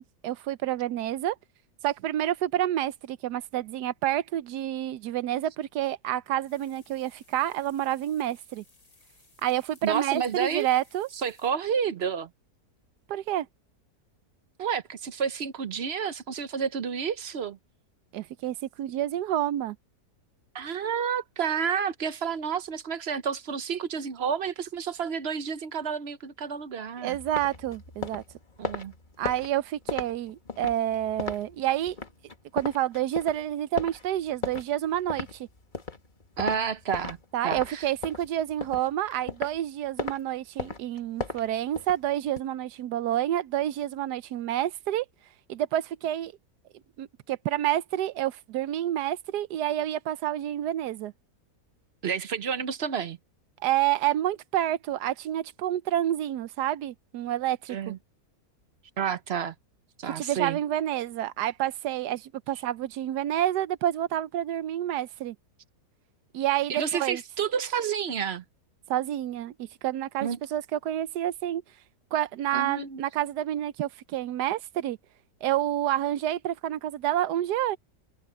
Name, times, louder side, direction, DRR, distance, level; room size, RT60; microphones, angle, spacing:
voice 1, 0.0-1.4 1.8-8.6 9.4-11.1 13.1-13.5 18.1-19.8 27.0-28.2 29.2-32.0 32.5-35.5 37.3-45.0 45.5-46.3 47.0-51.1 53.6-57.9 60.0-65.3 66.3-67.2 68.9-71.6 72.1-75.0 75.4-77.8, right 12 dB, 90° right, 1.3 m, -29 dB
sound 1, 6.5-11.5, left 3 dB, 65° left, 5.0 m, -60 dB
voice 2, 9.8-10.7 11.2-12.3 14.6-17.6 20.5-27.2 28.6-28.9 36.4-37.2 37.4-37.9 52.0-53.2 57.7-58.0 59.0-59.5 60.0-60.6 66.7-68.4 70.2-70.4 72.5-73.0, right 7 dB, 50° right, 0.8 m, -30 dB
sound 2, 27.1-37.2 37.5-39.6 40.0-40.2 40.6-42.4, left 4 dB, 30° left, 1.7 m, -36 dB
omnidirectional pair, 1.7 m